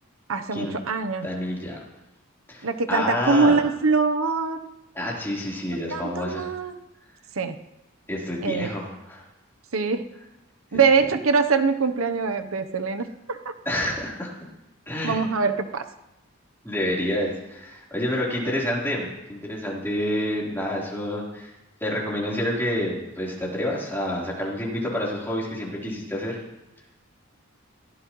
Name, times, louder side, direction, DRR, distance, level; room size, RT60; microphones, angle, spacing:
voice 1, 0.3-1.3 2.6-4.6 5.9-6.8 7.4-7.6 8.4-8.7 9.7-10.0 10.7-13.4 15.0-15.9, right 4 dB, 80° right, 8 dB, 0.9 m, -23 dB
voice 2, 1.2-1.8 2.5-3.6 4.9-6.5 8.1-9.2 13.7-14.3 14.9-15.2 16.6-21.5 21.8-26.4, left 1 dB, 10° left, -5 dB, 3.7 m, -28 dB
22.0 x 15.5 x 3.1 m, 0.98 s
head